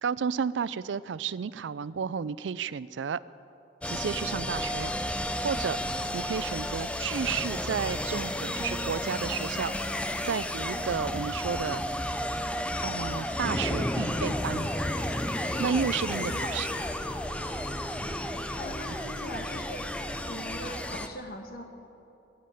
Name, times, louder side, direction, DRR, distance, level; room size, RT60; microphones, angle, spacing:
voice 1, 0.0-3.2 3.8-4.9 5.4-5.8 6.1-9.7 10.2-11.8 12.8-14.7 15.6-16.8 18.9-19.0, right 6 dB, 90° right, 18 dB, 0.4 m, -32 dB
sound 1, 3.8-21.1, left 1 dB, 5° left, 0.5 m, -32 dB
voice 2, 16.2-16.6 18.6-19.9 20.3-21.6, left 1 dB, 55° left, 4 dB, 1.4 m, -41 dB
14.0 x 10.0 x 8.9 m, 2.9 s
head